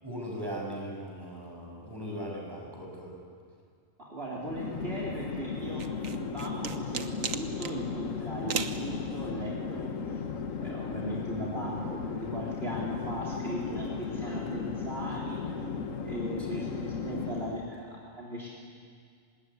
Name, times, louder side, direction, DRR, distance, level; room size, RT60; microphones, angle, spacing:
voice 1, 0.0-3.2 16.4-16.7, equal, 15° right, -1 dB, 7.0 m, -39 dB
voice 2, 4.0-10.2 10.6-15.5 16.0-18.5, right 1 dB, 50° right, -4 dB, 4.0 m, -38 dB
Chatter / Fixed-wing aircraft airplane, 4.3-17.7, left 5 dB, 80° left, 1.6 m, -36 dB
sound 1, 5.8-7.8 8.5-8.8, right 6 dB, 90° right, 1.6 m, -34 dB
25.0 x 20.0 x 9.8 m, 2.2 s
omnidirectional pair, 1.3 m